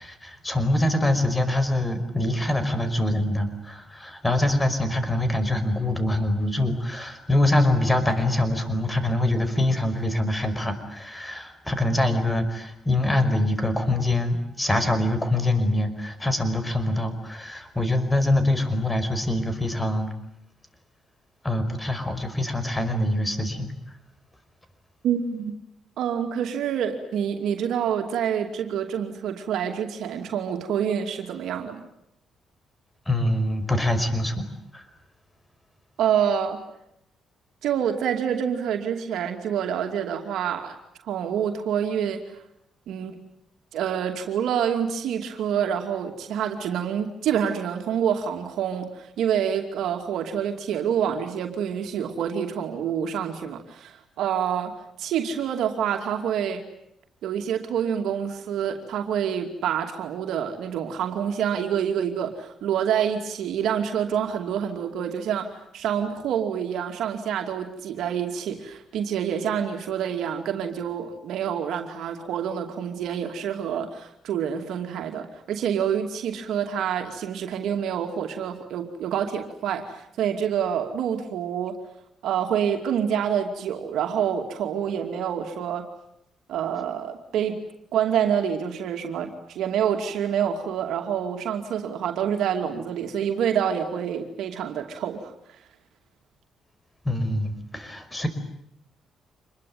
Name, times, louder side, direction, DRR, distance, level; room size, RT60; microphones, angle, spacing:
voice 1, 0.0-20.1 21.4-23.7 33.1-34.8 97.0-98.3, left 1 dB, 15° left, 10 dB, 5.3 m, -24 dB
voice 2, 25.0-25.6 26.0-31.8 36.0-36.6 37.6-40.7 41.0-42.4 42.9-43.2 43.7-56.7 57.2-81.8 82.2-85.9 86.5-87.6 87.9-95.6, right 8 dB, 80° right, 4 dB, 2.6 m, -27 dB
27.0 x 21.5 x 9.4 m, 0.77 s
cardioid pair, 90°, 0 cm